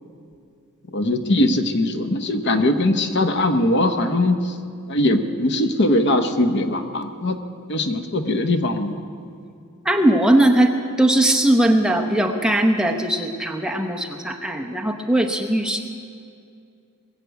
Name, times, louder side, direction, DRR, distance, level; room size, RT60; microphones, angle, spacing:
voice 1, 0.9-4.5 4.9-7.4 7.7-8.9, left 1 dB, 50° left, 8 dB, 0.9 m, -21 dB
voice 2, 9.8-10.7 11.0-15.8, right 1 dB, 5° right, 2 dB, 0.8 m, -19 dB
21.0 x 7.6 x 8.1 m, 2.4 s
head